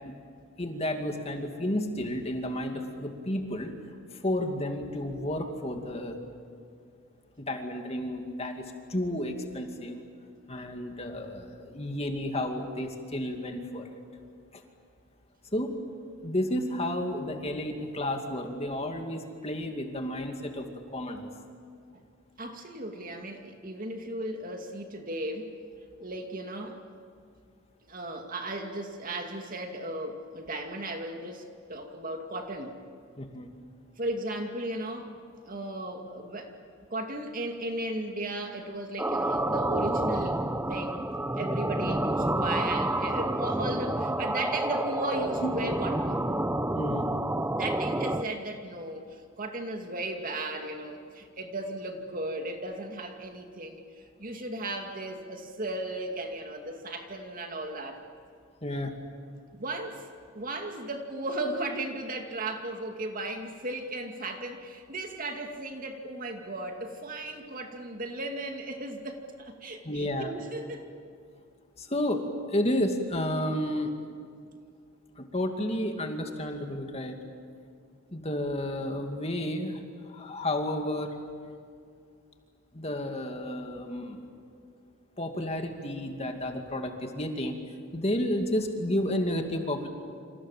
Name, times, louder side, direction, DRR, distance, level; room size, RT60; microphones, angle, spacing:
voice 1, 0.6-3.7 4.2-6.2 7.4-10.0 10.5-14.0 14.5-14.6 15.5-15.8 16.2-21.3 33.2-33.5 46.7-47.1 58.6-58.9 69.8-70.3 71.8-73.9 75.2-77.2 78.1-79.8 80.1-81.1 82.7-84.2 85.2-87.6 87.9-89.9, left 1 dB, 30° left, 4 dB, 2.4 m, -31 dB
voice 2, 22.4-25.5 26.0-26.8 27.9-31.4 31.7-32.8 34.0-35.1 35.4-36.6 36.9-40.4 40.7-41.1 41.4-46.2 47.5-58.0 59.5-60.0 60.3-70.9, right 1 dB, 40° right, 4 dB, 2.4 m, -36 dB
sound 1, 39.0-48.2, right 1 dB, 10° right, 0.8 m, -29 dB
29.0 x 27.0 x 7.4 m, 2.3 s
head